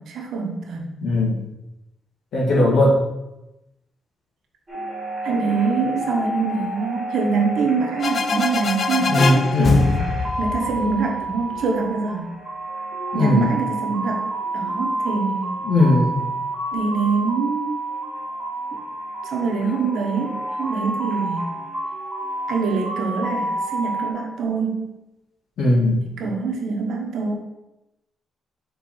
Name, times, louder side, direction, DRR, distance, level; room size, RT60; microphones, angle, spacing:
voice 1, 0.0-0.9 5.2-10.0 10.4-12.3 13.1-14.3 14.5-15.5 16.7-17.8 19.2-21.5 22.5-24.9 26.0-27.3, right 4 dB, 70° right, 1 dB, 1.2 m, -24 dB
voice 2, 1.0-1.4 2.3-3.0 9.1-9.9 13.1-13.5 15.7-16.2 25.6-26.0, left 1 dB, 70° left, -4 dB, 2.1 m, -18 dB
sound 1, 4.7-24.1, right 2 dB, 20° right, 1.7 m, -29 dB
sound 2, 8.0-11.6, left 5 dB, 40° left, 0.3 m, -24 dB
5.6 x 4.1 x 4.4 m, 0.95 s
cardioid pair, 145°, 0 cm